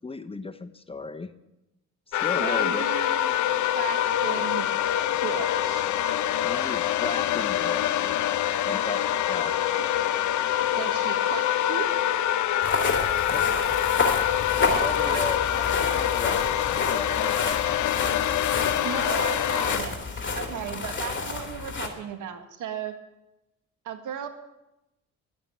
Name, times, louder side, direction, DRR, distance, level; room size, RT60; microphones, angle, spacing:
voice 1, 0.0-1.3 2.1-2.8 6.4-8.2 8.6-9.0 9.3-9.7 13.3-13.5 14.7-17.9, left 3 dB, 20° left, 10 dB, 0.8 m, -35 dB
sound 1, 2.1-19.8, left 11 dB, 70° left, 0.8 m, -25 dB
voice 2, 2.4-3.3 3.7-4.7 5.2-6.0 10.8-11.9 15.1-15.2 18.8-23.0 23.8-24.3, right 8 dB, 80° right, 8 dB, 1.7 m, -36 dB
sound 2, 12.6-21.9, left 4 dB, 40° left, 2.6 m, -29 dB
11.5 x 8.7 x 9.6 m, 0.95 s
cardioid pair, 90°, 30 cm